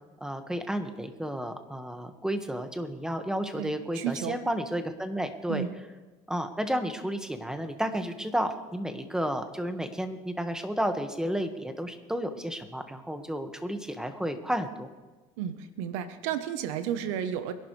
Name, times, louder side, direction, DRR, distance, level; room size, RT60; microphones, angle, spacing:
voice 1, 0.2-5.6 6.3-14.9, equal, 5° right, 7 dB, 1.6 m, -32 dB
voice 2, 3.5-4.4 5.5-5.7 15.4-17.5, right 9 dB, 90° right, 11 dB, 1.0 m, -32 dB
24.5 x 11.5 x 3.3 m, 1.3 s
supercardioid pair, 85°, 16 cm